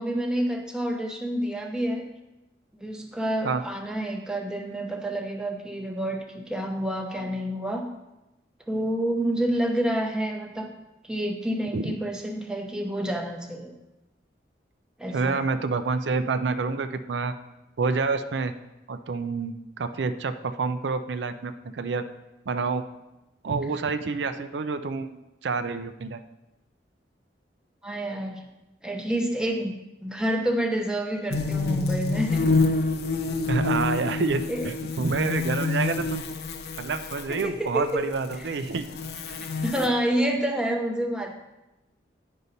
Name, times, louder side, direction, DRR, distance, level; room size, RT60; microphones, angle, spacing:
voice 1, 0.0-2.1 2.8-7.9 8.7-10.7 11.0-13.7 15.0-15.4 27.8-28.5 28.8-29.7 30.0-32.5 34.5-34.7 37.3-38.0 38.4-38.5 39.4-41.3, right 1 dB, 5° right, 2 dB, 0.7 m, -28 dB
voice 2, 15.1-17.3 17.8-18.5 18.9-22.0 22.5-22.8 23.4-26.2 33.5-36.3 36.8-38.8 39.4-39.5, right 4 dB, 80° right, 9 dB, 0.5 m, -28 dB
sound 1, 31.3-37.4 38.0-39.9, left 3 dB, 60° left, 0.6 m, -27 dB
9.6 x 5.4 x 4.0 m, 0.97 s
head